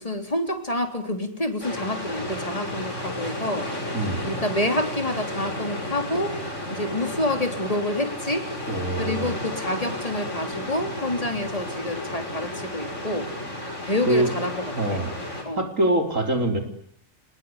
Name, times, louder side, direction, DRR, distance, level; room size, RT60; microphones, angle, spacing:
voice 1, 0.0-3.7 4.2-6.4 6.7-8.5 9.0-13.3 13.8-15.0 15.4-15.7, left 1 dB, 25° left, 6 dB, 3.6 m, -28 dB
sound 1, 1.6-15.4, left 1 dB, 65° left, 6.7 m, -32 dB
voice 2, 8.7-9.4 14.1-14.3 14.8-15.2 15.6-16.6, right 1 dB, 80° right, 5 dB, 4.6 m, -24 dB
25.5 x 21.0 x 9.7 m, 0.62 s
omnidirectional pair, 1.4 m